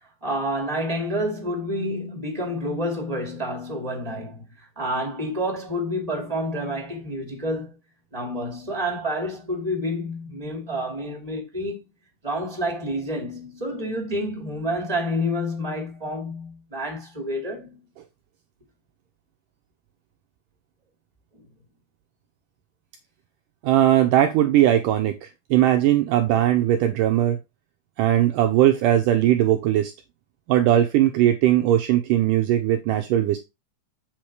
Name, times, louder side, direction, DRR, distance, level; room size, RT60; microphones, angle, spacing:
voice 1, 0.2-4.5 4.8-7.8 8.1-11.8 12.2-17.8 21.3-21.4, equal, 15° right, 1.7 m, -29 dB
voice 2, 23.6-27.4 28.0-29.9 30.5-33.4, right 12 dB, 90° right, 1.9 m, -19 dB
7.9 x 4.4 x 4.8 m
omnidirectional pair, 4.5 m